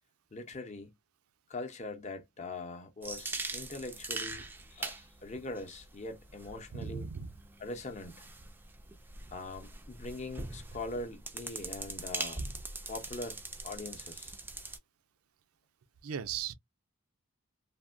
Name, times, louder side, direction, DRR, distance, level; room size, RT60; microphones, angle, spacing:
voice 1, 0.3-0.9 1.5-4.4 4.7-7.0 7.6-8.3 9.3-12.4 12.9-14.3, left 2 dB, 35° left, 0.6 m, -42 dB
sound 1, 3.0-14.8, right 3 dB, 10° right, 0.3 m, -42 dB
voice 2, 6.7-7.3 16.0-16.5, right 7 dB, 80° right, 0.5 m, -37 dB
3.4 x 2.1 x 2.4 m
head